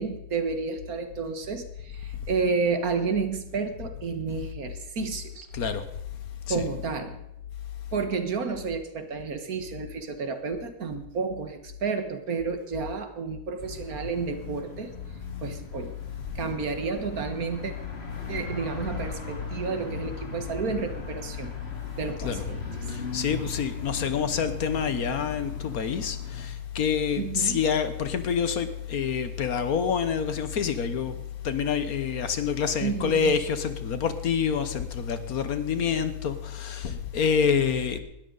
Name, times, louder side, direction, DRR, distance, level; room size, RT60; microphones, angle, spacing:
voice 1, 0.0-5.5 6.5-7.2 7.9-14.9 15.4-16.0 16.4-17.7 18.3-21.5 22.0-22.6 27.2-27.6 32.8-33.4, right 5 dB, 65° right, 1.9 m, -31 dB
voice 2, 5.5-5.8 6.5-6.6 22.2-22.4 22.9-31.1 31.4-38.0, left 7 dB, 65° left, 1.5 m, -27 dB
sound 1, 13.6-26.5, left 3 dB, 40° left, 2.4 m, -39 dB
19.5 x 13.0 x 4.0 m
omnidirectional pair, 1.7 m